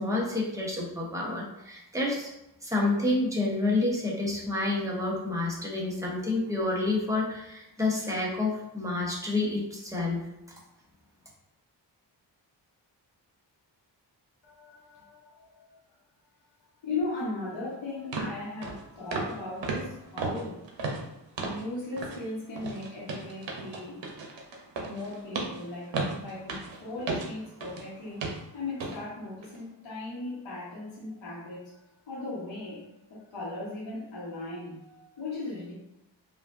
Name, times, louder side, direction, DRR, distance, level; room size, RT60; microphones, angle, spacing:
voice 1, 0.0-2.3 2.6-10.2, left 2 dB, 5° right, -4 dB, 1.1 m, -29 dB
voice 2, 14.4-15.8 16.8-20.6 21.4-24.0 24.8-31.7 32.1-35.7, left 2 dB, 90° left, -7 dB, 1.3 m, -38 dB
sound 1, 17.5-17.6 18.1-18.3 18.6-18.8 19.1-19.4 19.6-21.7 22.0-22.2 22.6-27.9 28.2-28.4 28.8-29.0 29.4-29.6, right 3 dB, 80° right, 0.8 m, -34 dB
4.9 x 2.5 x 2.6 m, 0.86 s
wide cardioid pair, 95°, 43 cm